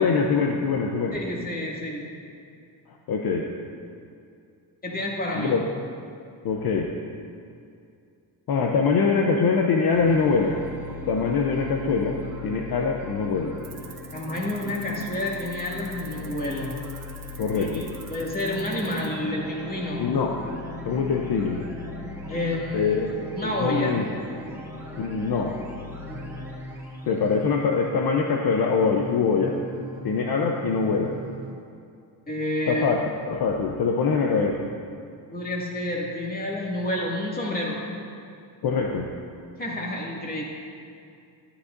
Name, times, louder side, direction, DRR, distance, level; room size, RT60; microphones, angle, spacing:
voice 1, 0.0-1.2 3.1-3.5 5.3-5.6 6.4-6.9 8.5-10.6 11.1-13.6 17.4-17.9 20.0-20.3 20.9-21.6 22.7-23.1 23.4-24.1 25.0-25.5 27.1-29.5 30.0-31.1 32.7-34.7 38.6-39.1, left 5 dB, 50° left, 1 dB, 0.8 m, -23 dB
voice 2, 1.1-2.1 4.8-5.6 14.1-16.7 17.5-20.1 22.3-23.0 23.3-24.0 32.3-32.9 35.3-37.8 39.6-40.4, left 1 dB, 20° left, -3 dB, 2.2 m, -29 dB
sound 1, 9.9-27.5, left 2 dB, 5° right, 2.4 m, -39 dB
sound 2, 13.6-19.1, right 9 dB, 65° right, 1.4 m, -46 dB
sound 3, 26.1-31.5, right 2 dB, 85° right, 1.8 m, -40 dB
12.5 x 9.9 x 2.6 m, 2.5 s
cardioid pair, 90°, 46 cm